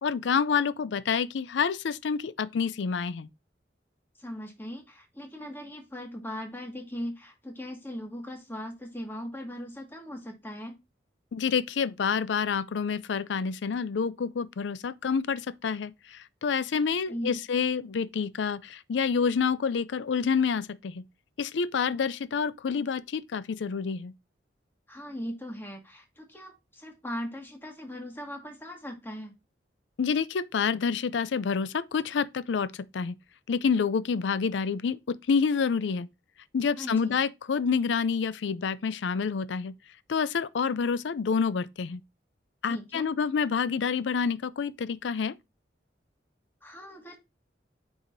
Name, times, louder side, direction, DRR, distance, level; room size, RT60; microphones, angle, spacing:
voice 1, 0.0-3.3 11.3-21.0 21.4-24.1 30.0-33.2 33.5-36.1 36.5-39.7 40.1-42.0 42.6-45.3, left 6 dB, 90° left, 0.4 m, -28 dB
voice 2, 4.2-10.8 17.1-17.4 24.9-29.3 36.8-37.2 42.6-43.1 46.6-47.2, equal, 10° left, 1.8 m, -39 dB
8.8 x 4.9 x 2.6 m
head